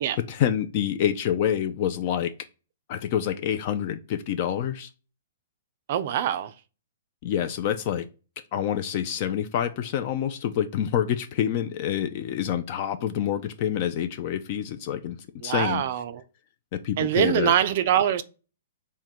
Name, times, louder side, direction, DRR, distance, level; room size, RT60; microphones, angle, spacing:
voice 1, 0.3-2.3 2.9-4.9 7.2-8.0 8.5-15.2 15.4-15.8 16.8-17.5, left 9 dB, 40° left, 0.3 m, -27 dB
voice 2, 5.9-6.5 15.4-16.2 17.0-18.2, right 10 dB, 45° right, 0.3 m, -24 dB
3.7 x 2.1 x 4.4 m
hypercardioid pair, 155°, 0 cm